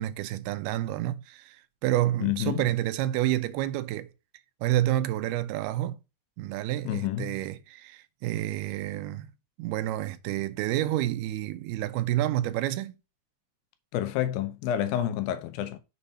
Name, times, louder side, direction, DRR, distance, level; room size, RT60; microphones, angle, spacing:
voice 1, 0.0-4.1 4.6-6.0 6.4-9.3 9.6-12.9, right 14 dB, 85° right, 2.5 m, -29 dB
voice 2, 2.2-2.6 6.8-7.4 13.9-15.8, left 11 dB, 80° left, 2.2 m, -29 dB
6.9 x 4.0 x 5.4 m
omnidirectional pair, 4.4 m